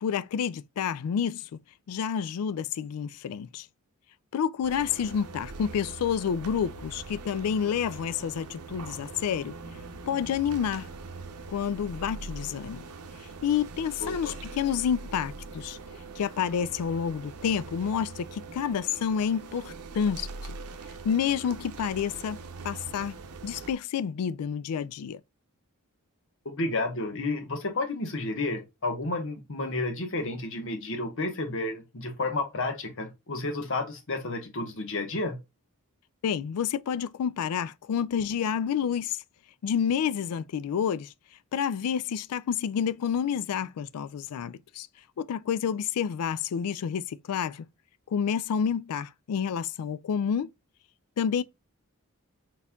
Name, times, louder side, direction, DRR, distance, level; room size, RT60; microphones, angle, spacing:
voice 1, 0.0-1.5 1.9-3.7 4.3-9.6 10.1-10.9 11.5-12.8 13.4-15.8 16.2-20.6 21.0-22.4 22.6-23.1 23.4-25.2 36.2-39.2 39.6-41.1 41.5-44.9 45.2-47.7 48.1-50.5 51.2-51.4, left 7 dB, 80° left, 0.3 m, -29 dB
sound 1, 4.6-23.7, right 3 dB, 85° right, 0.7 m, -42 dB
voice 2, 14.0-14.3 26.4-35.4, left 2 dB, 60° left, 1.2 m, -31 dB
4.2 x 4.1 x 2.3 m
head